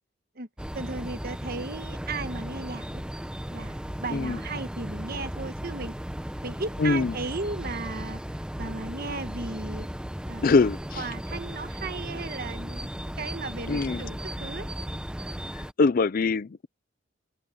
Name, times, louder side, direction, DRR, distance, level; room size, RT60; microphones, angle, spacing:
sound 1, 0.6-15.7, equal, 5° right, 0.9 m, -36 dB
voice 1, 0.7-3.0 3.5-5.9 6.4-9.9 10.2-10.5 11.0-14.7, right 3 dB, 50° right, 1.3 m, -36 dB
voice 2, 6.8-7.1 10.4-11.0 13.7-14.0 15.6-16.7, left 4 dB, 45° left, 0.4 m, -23 dB
head